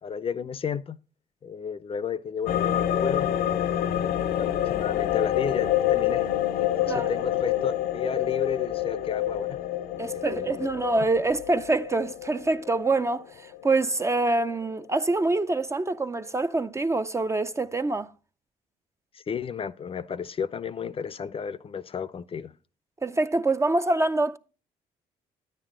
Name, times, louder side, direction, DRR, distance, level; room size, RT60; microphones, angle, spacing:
voice 1, 0.0-1.0 1.4-3.3 3.8-6.3 6.6-9.6 10.1-10.6 19.1-22.5, left 6 dB, 35° left, 0.5 m, -33 dB
sound 1, 2.5-14.6 15.0-15.1, left 11 dB, 85° left, 0.6 m, -27 dB
voice 2, 10.0-18.1 23.0-24.4, right 2 dB, 20° right, 0.4 m, -25 dB
9.5 x 9.0 x 3.7 m
cardioid pair, 80°, 15 cm